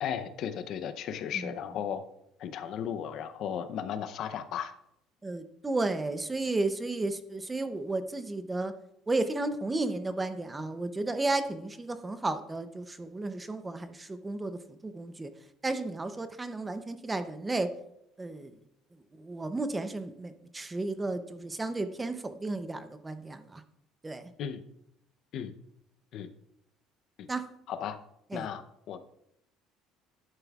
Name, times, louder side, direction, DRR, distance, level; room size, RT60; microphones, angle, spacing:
voice 1, 0.0-2.0 2.4-4.7 24.4-24.7 25.3-25.5 26.1-26.3 27.2-27.3 27.7-28.0 28.3-29.0, left 8 dB, 55° left, 10 dB, 0.6 m, -35 dB
voice 2, 5.2-8.7 9.1-15.3 15.6-17.7 18.2-18.5 19.1-23.6 24.0-24.3 27.3-27.4 28.3-28.5, right 2 dB, 15° right, 10 dB, 0.6 m, -33 dB
11.0 x 9.1 x 2.4 m, 0.77 s
cardioid pair, 140°, 0 cm